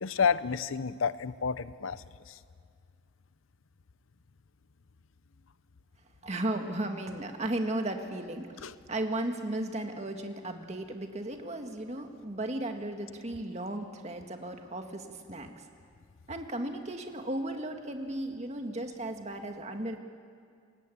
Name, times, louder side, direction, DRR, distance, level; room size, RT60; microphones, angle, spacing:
voice 1, 0.0-2.4 8.6-8.7, left 6 dB, 80° left, 15 dB, 0.7 m, -30 dB
voice 2, 6.2-15.5 16.3-20.0, right 1 dB, 35° right, 5 dB, 1.9 m, -35 dB
28.5 x 20.5 x 8.5 m, 2.2 s
head